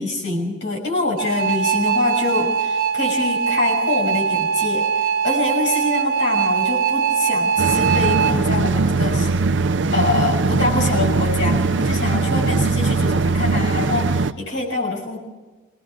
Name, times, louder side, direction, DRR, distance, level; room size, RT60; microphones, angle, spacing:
voice 1, 0.0-4.9 5.2-9.3 9.9-15.2, left 2 dB, 70° left, -1 dB, 6.3 m, -24 dB
sound 1, 1.2-8.4, right 6 dB, 50° right, 1.0 m, -21 dB
sound 2, 7.6-14.3, right 3 dB, 75° right, 0.6 m, -20 dB
23.5 x 19.0 x 6.0 m, 1.3 s
head